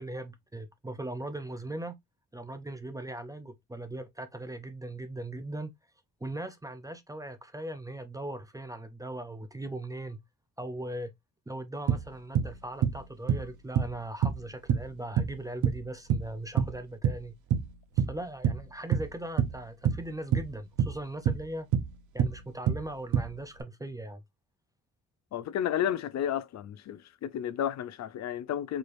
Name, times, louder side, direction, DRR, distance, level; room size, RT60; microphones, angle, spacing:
voice 1, 0.0-2.0 2.3-5.7 6.2-10.2 10.6-11.1 11.5-17.3 18.0-21.7 22.1-24.2, right 1 dB, 10° right, 0.4 m, -39 dB
sound 1, 11.9-12.6 12.8-13.0 13.3-14.0 14.2-15.4 15.6-16.3 16.6-17.2 17.5-17.7 18.0-18.7 18.9-20.1 20.3-21.5 21.7-22.9 23.1-23.6, right 8 dB, 65° right, 0.7 m, -27 dB
voice 2, 25.3-28.8, left 10 dB, 60° left, 0.5 m, -32 dB
4.6 x 3.2 x 2.5 m
wide cardioid pair, 165°, 32 cm